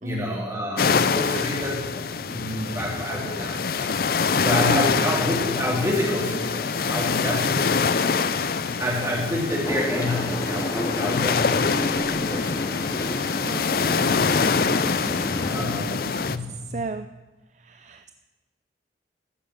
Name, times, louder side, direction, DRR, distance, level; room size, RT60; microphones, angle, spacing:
voice 1, 0.0-4.0 4.4-8.3 8.8-12.6 13.0-13.3 13.5-13.6 14.2-14.3 15.5-16.8, left 1 dB, 15° right, -4 dB, 3.2 m, -29 dB
sound 1, 0.8-16.4, left 5 dB, 55° left, 0.5 m, -25 dB
sound 2, 9.6-15.6, left 1 dB, 20° left, 0.8 m, -31 dB
voice 2, 13.4-14.0 14.5-15.0 16.5-17.1 17.5-18.1, right 3 dB, 40° right, 9 dB, 0.4 m, -34 dB
15.0 x 6.8 x 8.7 m, 1.2 s
head